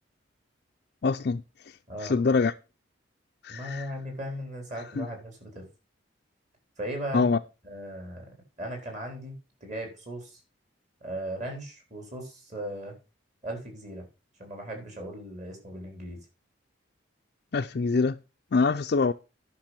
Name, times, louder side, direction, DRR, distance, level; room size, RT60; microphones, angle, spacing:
voice 1, 1.0-2.5 3.4-3.9 5.0-5.1 7.1-7.4 17.5-18.2 18.5-19.1, left 4 dB, 50° left, 0.4 m, -25 dB
voice 2, 3.5-5.7 6.8-7.3 7.6-9.3 9.6-10.4 11.0-13.0 13.4-14.0 14.4-16.2, right 1 dB, 35° right, 3.9 m, -37 dB
10.5 x 6.1 x 5.9 m
head